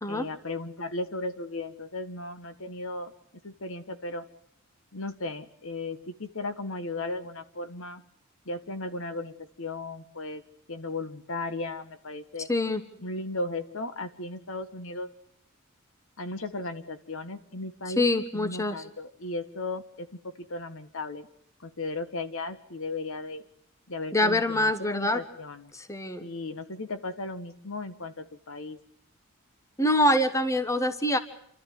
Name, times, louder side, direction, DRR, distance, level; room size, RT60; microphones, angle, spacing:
voice 1, 0.1-3.1 3.4-4.2 4.9-8.0 8.5-10.4 10.7-12.5 13.0-15.1 16.2-18.1 18.3-20.1 20.5-21.3 21.6-23.4 23.9-25.7 26.2-28.8, left 2 dB, 65° left, 10 dB, 1.7 m, -36 dB
voice 2, 12.5-12.8 18.0-18.7 24.1-25.2 25.7-26.2 29.8-31.2, left 1 dB, 15° left, 10 dB, 1.2 m, -25 dB
28.5 x 13.0 x 9.5 m, 0.70 s
head